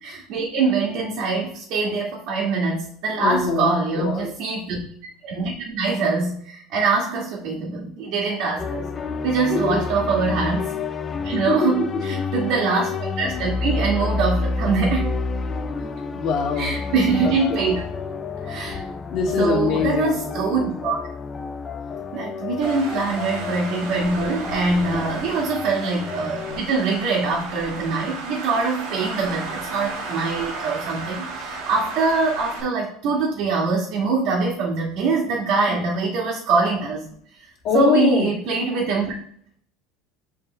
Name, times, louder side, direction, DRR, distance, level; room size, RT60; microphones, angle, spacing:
voice 1, 0.0-4.8 5.2-8.9 9.2-10.7 11.2-15.1 16.6-17.8 18.5-18.8 19.4-21.0 22.1-37.0 37.7-39.1, right 4 dB, 60° right, -3 dB, 1.9 m, -23 dB
voice 2, 3.2-4.3 9.5-9.9 11.5-11.7 15.8-16.7 17.2-17.6 19.1-20.1 24.9-25.2 35.7-35.8 37.6-38.3, left 5 dB, 50° left, -1 dB, 2.3 m, -23 dB
sound 1, 8.6-26.6, left 4 dB, 25° left, 0.6 m, -29 dB
Traffic noise roadway noise, 22.6-32.6, right 3 dB, 80° right, 2.0 m, -34 dB
7.2 x 4.6 x 3.3 m, 0.62 s
supercardioid pair, 125°, 0 cm